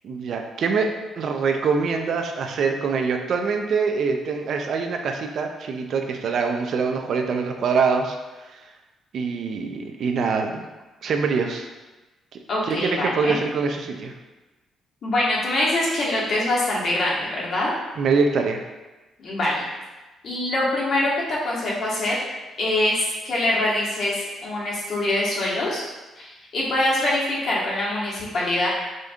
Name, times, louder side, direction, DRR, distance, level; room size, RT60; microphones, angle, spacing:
voice 1, 0.0-8.2 8.5-8.6 9.1-10.7 11.0-11.7 12.7-14.1 18.0-18.6, right 5 dB, 65° right, 4 dB, 0.4 m, -24 dB
voice 2, 12.5-13.4 15.0-17.7 19.2-19.6 20.2-22.3 22.6-25.8 26.2-28.7, left 1 dB, 55° left, -5 dB, 1.2 m, -24 dB
5.0 x 2.7 x 2.3 m, 1.1 s
cardioid pair, 90°, 0 cm